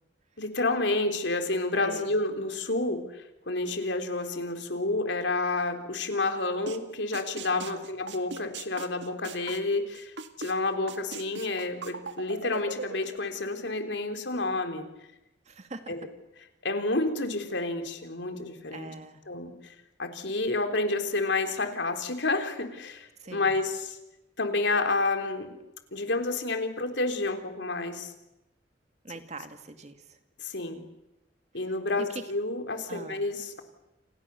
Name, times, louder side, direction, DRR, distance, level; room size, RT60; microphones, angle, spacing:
voice 1, 0.4-14.9 15.9-16.1 16.6-18.9 19.3-19.7 20.0-24.0 24.4-25.6 25.9-28.1 30.4-30.8 31.5-33.6, left 2 dB, 75° left, 6 dB, 3.5 m, -30 dB
voice 2, 1.7-2.2 7.5-7.9 15.5-16.0 18.7-19.2 23.2-23.5 29.0-30.2 32.0-32.2 32.9-33.2, right 2 dB, 40° right, 8 dB, 2.2 m, -42 dB
sound 1, 6.7-6.8 7.1-10.5 10.9-13.2, right 4 dB, 80° right, 1.9 m, -39 dB
29.0 x 28.0 x 7.0 m, 0.93 s
head